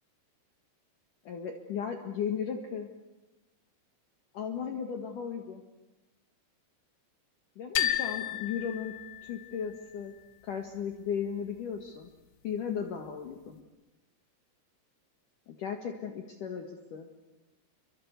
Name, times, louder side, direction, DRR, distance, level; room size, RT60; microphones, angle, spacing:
voice 1, 1.2-2.9 4.3-5.6 7.6-8.9 9.2-10.1 10.4-12.1 12.4-13.6 15.5-17.1, left 7 dB, 55° left, 5 dB, 2.8 m, -36 dB
sound 1, 7.8-9.7, left 12 dB, 70° left, 3.6 m, -32 dB
29.0 x 24.0 x 8.3 m, 1.0 s
omnidirectional pair, 5.3 m